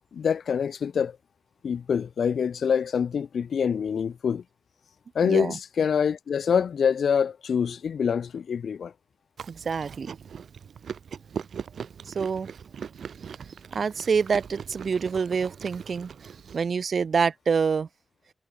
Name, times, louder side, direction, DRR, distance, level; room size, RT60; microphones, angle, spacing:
voice 1, 0.1-1.2 1.6-4.4 5.1-8.9, left 7 dB, 75° left, 0.5 m, -25 dB
voice 2, 5.2-5.5 9.5-10.2 12.1-12.5 13.7-16.1 16.5-17.9, right 5 dB, 55° right, 0.5 m, -26 dB
Chewing mastication, 9.4-16.6, right 7 dB, 75° right, 2.4 m, -40 dB
wide cardioid pair, 140°, 0 cm